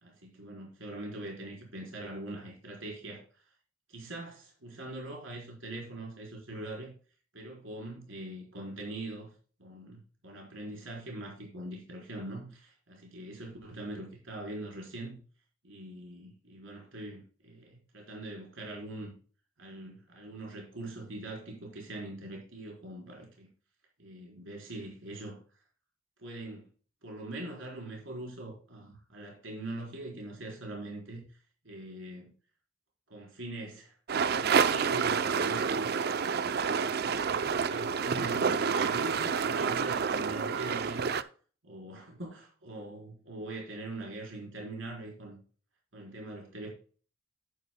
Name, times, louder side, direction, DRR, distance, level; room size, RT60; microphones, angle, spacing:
voice 1, 0.0-3.2 3.9-6.9 7.3-9.3 9.6-15.2 15.6-19.1 19.6-23.5 24.0-25.4 26.2-26.6 27.0-31.3 31.6-32.3 33.1-35.9 36.4-41.2 41.6-45.4 45.9-46.7, right 1 dB, 75° right, -2 dB, 4.1 m, -42 dB
sound 1, 34.1-41.2, right 6 dB, 50° right, 0.5 m, -28 dB
10.5 x 9.5 x 2.2 m, 0.40 s
head